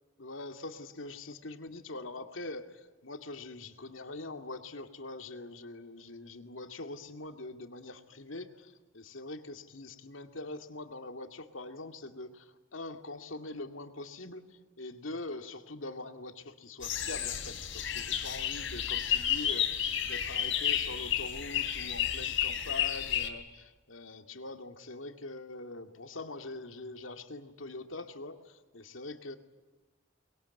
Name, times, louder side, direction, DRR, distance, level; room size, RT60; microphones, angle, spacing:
voice 1, 0.2-14.4 14.8-29.4, left 2 dB, 90° left, 7 dB, 2.3 m, -43 dB
sound 1, 16.8-23.3, left 9 dB, 70° left, 3.5 m, -32 dB
24.0 x 22.0 x 9.5 m, 1.2 s
head